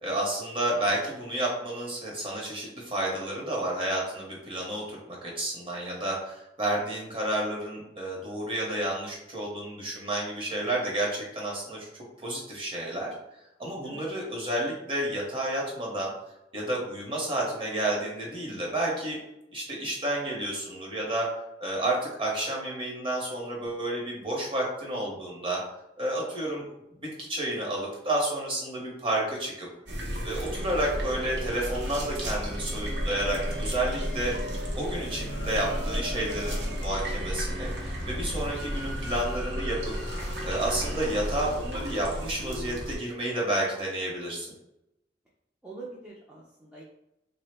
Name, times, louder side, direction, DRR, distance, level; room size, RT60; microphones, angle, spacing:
voice 1, 0.0-11.9 12.2-13.1 13.6-16.1 16.5-19.2 19.5-21.3 21.6-25.6 26.0-26.6 27.0-29.7 30.2-34.3 34.7-39.9 40.4-44.5, right 1 dB, 30° right, -3 dB, 0.8 m, -30 dB
sound 1, 29.9-43.0, equal, 60° right, 0.7 m, -33 dB
voice 2, 45.6-46.8, right 3 dB, 5° right, -7 dB, 0.4 m, -44 dB
3.2 x 2.0 x 3.3 m, 0.89 s
head